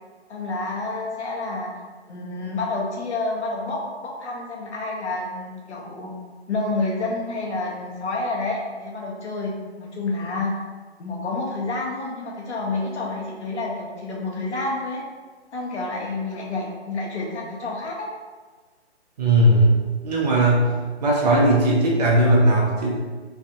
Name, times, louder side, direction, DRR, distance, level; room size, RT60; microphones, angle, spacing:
voice 1, 0.3-1.7 2.1-6.1 6.5-10.5 11.0-15.0 15.5-18.1, left 2 dB, 80° left, -2 dB, 0.9 m, -29 dB
voice 2, 19.2-20.7 21.0-22.9, right 1 dB, 40° right, -3 dB, 0.7 m, -18 dB
3.3 x 2.4 x 2.6 m, 1.4 s
hypercardioid pair, 150°, 33 cm